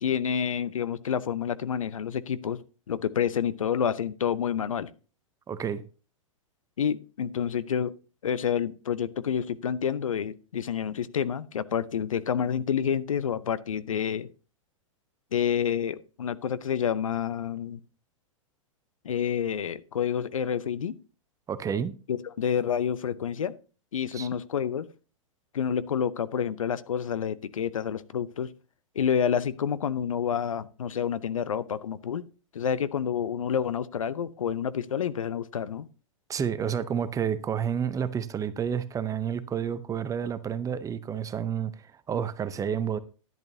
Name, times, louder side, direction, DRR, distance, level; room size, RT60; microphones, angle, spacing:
voice 1, 0.0-2.6 2.9-4.9 6.8-7.9 8.2-14.3 15.3-17.8 19.0-20.9 22.1-23.5 23.9-24.9 25.5-28.5 28.9-32.2 32.5-35.9, left 8 dB, 80° left, 0.7 m, -28 dB
voice 2, 5.5-5.8 21.5-21.9 24.1-24.3 36.3-43.0, right 8 dB, 20° right, 0.7 m, -30 dB
10.5 x 10.5 x 2.8 m
hypercardioid pair, 105°, 17 cm